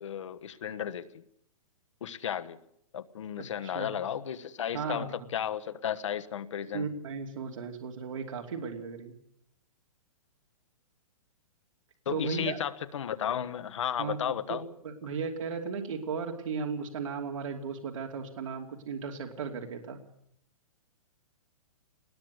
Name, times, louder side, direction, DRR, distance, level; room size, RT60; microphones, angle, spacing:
voice 1, 0.0-1.2 2.0-2.6 2.9-6.9 12.0-14.6, left 9 dB, 60° left, 11 dB, 1.3 m, -34 dB
voice 2, 3.4-4.0 4.7-5.1 6.7-9.1 12.1-12.6 14.0-14.6 14.8-20.0, right 5 dB, 65° right, 2 dB, 2.8 m, -36 dB
20.5 x 20.0 x 8.1 m, 0.72 s
hypercardioid pair, 175°, 18 cm